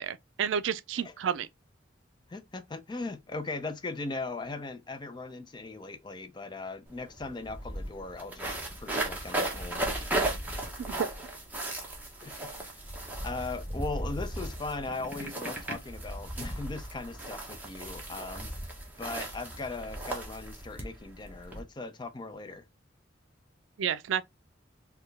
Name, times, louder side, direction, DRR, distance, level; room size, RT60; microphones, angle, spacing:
voice 1, 0.0-1.5 10.8-11.1 23.8-24.2, right 8 dB, 75° right, 0.4 m, -30 dB
voice 2, 2.3-9.9 12.2-12.8 13.2-18.5 19.0-22.6, left 3 dB, 25° left, 0.4 m, -39 dB
sound 1, 6.9-7.0 7.2-21.6, right 1 dB, 10° right, 0.9 m, -36 dB
4.2 x 2.3 x 3.1 m
head